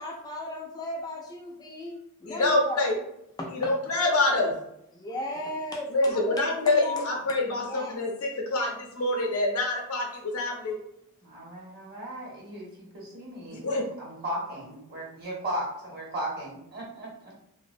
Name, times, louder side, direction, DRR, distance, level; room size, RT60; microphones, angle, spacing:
voice 1, 0.0-2.0 2.2-2.9 3.4-3.7 4.9-7.2 7.6-8.0, left 2 dB, 15° left, -1 dB, 0.3 m, -35 dB
voice 2, 2.3-2.9 3.5-4.6 5.9-10.8 13.5-13.8, left 2 dB, 70° left, 0 dB, 0.6 m, -26 dB
voice 3, 11.2-17.3, right 1 dB, 45° right, -4 dB, 0.9 m, -36 dB
2.4 x 2.0 x 2.5 m, 0.78 s
head